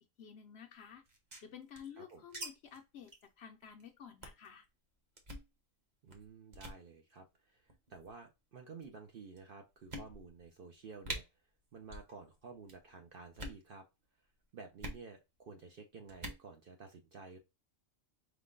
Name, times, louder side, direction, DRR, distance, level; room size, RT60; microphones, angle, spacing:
voice 1, 0.2-1.0 1.4-4.7, left 8 dB, 65° left, 0.7 m, -52 dB
sound 1, 1.0-2.5 2.7-2.8 3.1-3.3 3.6-3.8 4.2-4.5 5.2-5.5 6.1-6.3 6.5-6.8 7.7-8.1 8.8-8.9 9.4-9.5 9.9-10.4 10.7-10.8 11.0-11.2 11.8-12.1 12.4-12.8 13.3-13.6 14.8-15.0 16.1-16.4, right 1 dB, 35° right, 0.9 m, -44 dB
voice 2, 6.0-11.2 11.7-13.8 14.5-17.4, right 4 dB, 55° right, 0.6 m, -52 dB
5.0 x 2.1 x 3.7 m
omnidirectional pair, 1.4 m